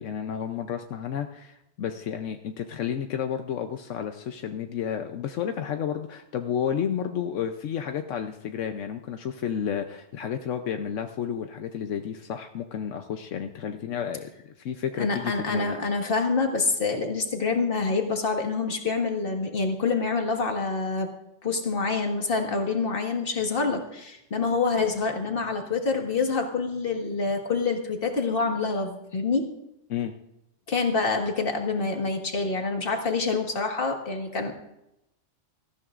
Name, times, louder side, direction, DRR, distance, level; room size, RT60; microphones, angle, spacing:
voice 1, 0.0-15.8 29.9-30.1, left 8 dB, 80° left, 6 dB, 1.1 m, -31 dB
voice 2, 15.0-21.1 21.4-29.5 30.7-34.5, left 4 dB, 50° left, 3 dB, 1.8 m, -26 dB
18.5 x 14.0 x 2.5 m, 0.85 s
omnidirectional pair, 1.3 m